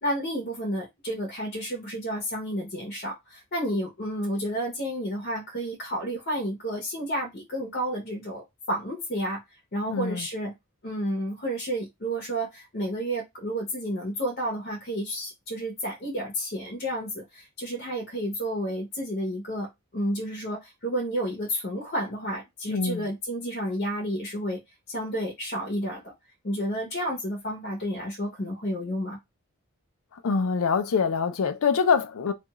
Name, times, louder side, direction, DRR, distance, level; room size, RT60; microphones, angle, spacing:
voice 1, 0.0-9.4 9.7-10.5 10.8-24.6 24.9-26.1 26.4-29.2, equal, 50° left, 0.8 m, -31 dB
voice 2, 9.9-10.3 22.7-23.1 30.1-32.3, left 5 dB, 85° left, 0.5 m, -25 dB
2.4 x 2.3 x 2.9 m
head